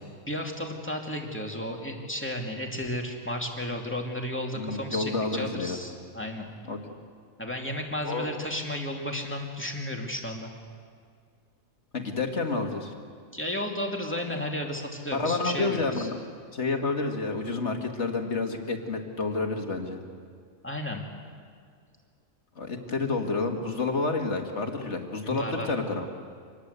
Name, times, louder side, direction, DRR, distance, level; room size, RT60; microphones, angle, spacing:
voice 1, 0.3-6.5 7.4-10.5 13.3-16.1 20.6-21.0 25.2-25.7, left 1 dB, 10° left, 1 dB, 2.6 m, -33 dB
voice 2, 4.6-5.8 6.7-6.8 8.0-8.3 11.9-12.9 15.1-16.2 16.5-20.0 22.6-26.1, left 3 dB, 55° left, 4 dB, 2.3 m, -29 dB
26.0 x 20.0 x 8.2 m, 2.1 s
omnidirectional pair, 1.4 m